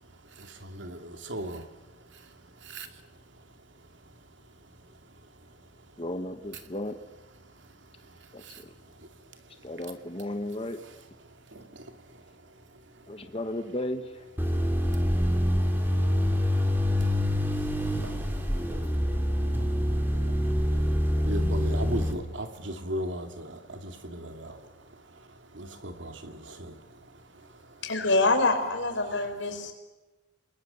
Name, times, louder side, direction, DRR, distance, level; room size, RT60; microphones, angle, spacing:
voice 1, 0.3-1.7 2.1-2.2 2.6-2.9 8.4-8.6 11.5-11.9 17.9-18.9 19.9-20.0 20.3-20.4 20.7-20.9 21.2-24.7 25.5-26.8, right 1 dB, 75° right, 7 dB, 2.4 m, -37 dB
voice 2, 6.0-7.0 8.3-8.4 9.6-10.8 13.1-14.0, left 1 dB, 30° left, 7 dB, 1.1 m, -34 dB
sound 1, 14.4-22.1, equal, 10° right, 2.6 m, -26 dB
voice 3, 27.8-29.7, left 2 dB, 80° left, 5 dB, 5.1 m, -25 dB
29.0 x 21.0 x 6.9 m, 1.1 s
head